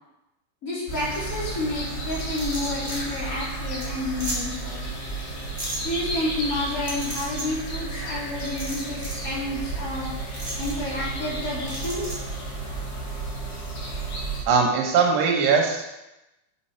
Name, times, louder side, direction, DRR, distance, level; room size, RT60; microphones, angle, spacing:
voice 1, 0.6-4.9 5.8-10.1 10.6-12.2, left 1 dB, 30° left, -6 dB, 1.7 m, -30 dB
sound 1, 0.9-14.4, right 2 dB, 75° left, 4.1 m, -32 dB
sound 2, 2.2-3.0 3.4-3.5 3.8-3.9 4.2-4.4 5.6-5.8 6.8-7.4 8.4-9.2 10.3-10.7 11.7-12.2, right 1 dB, 10° right, 1.2 m, -34 dB
voice 2, 14.5-16.0, right 5 dB, 85° right, 1 dB, 3.1 m, -21 dB
7.6 x 5.6 x 4.3 m, 0.94 s
omnidirectional pair, 4.8 m